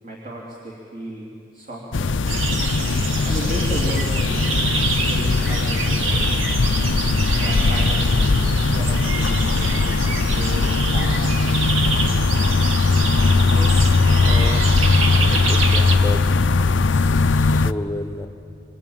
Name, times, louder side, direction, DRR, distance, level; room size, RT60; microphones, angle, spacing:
voice 1, 0.0-2.2 3.2-4.5 5.0-6.3 7.3-8.4 8.7-11.3, right 1 dB, 40° right, -3 dB, 3.3 m, -34 dB
sound 1, 1.9-17.7, left 3 dB, 65° left, 0.6 m, -19 dB
sound 2, 2.3-16.0, right 3 dB, 85° right, 1.9 m, -27 dB
voice 2, 14.3-14.7 15.2-16.2 17.6-18.3, left 1 dB, 15° left, 7 dB, 1.1 m, -30 dB
25.5 x 24.0 x 9.1 m, 2.7 s
head